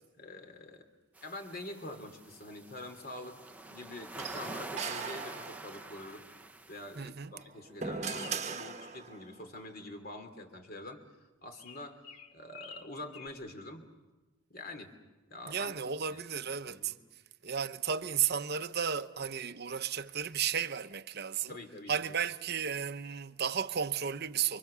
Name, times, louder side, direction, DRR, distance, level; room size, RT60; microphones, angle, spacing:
voice 1, 0.2-0.8 1.2-6.3 6.7-11.0 11.4-12.0 12.3-13.9 14.5-14.9 15.3-15.8 16.1-16.2 16.7-17.0 21.5-22.1, left 1 dB, 45° left, 3.1 m, -45 dB
sound 1, 1.2-7.1, right 2 dB, 5° right, 0.8 m, -46 dB
sound 2, 4.2-5.9 7.3-9.3, right 5 dB, 35° right, 1.2 m, -39 dB
voice 2, 7.0-7.3 15.5-16.9 17.4-21.5 21.9-24.6, right 7 dB, 50° right, 0.8 m, -33 dB
sound 3, 8.1-9.0 9.3-9.9 11.5-13.3, left 7 dB, 75° left, 2.2 m, -51 dB
29.0 x 25.0 x 6.9 m
head